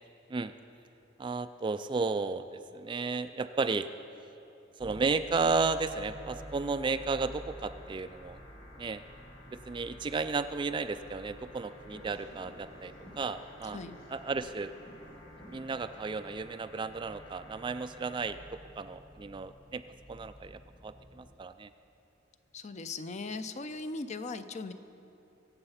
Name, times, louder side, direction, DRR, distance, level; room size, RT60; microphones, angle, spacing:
voice 1, 1.2-3.9 4.8-8.4 8.8-9.0 9.5-13.8 14.1-14.7 15.5-18.4 18.8-19.8 20.1-21.7, right 4 dB, 25° right, 11 dB, 0.3 m, -33 dB
sound 1, 4.8-21.3, equal, 20° left, 1.2 m, -52 dB
sound 2, 5.8-18.3, left 2 dB, 65° left, 2.6 m, -57 dB
sound 3, 11.2-16.4, equal, 85° left, 4.0 m, -54 dB
voice 2, 22.5-24.7, left 3 dB, 35° left, 10 dB, 0.5 m, -39 dB
23.0 x 8.0 x 5.7 m, 2.8 s
head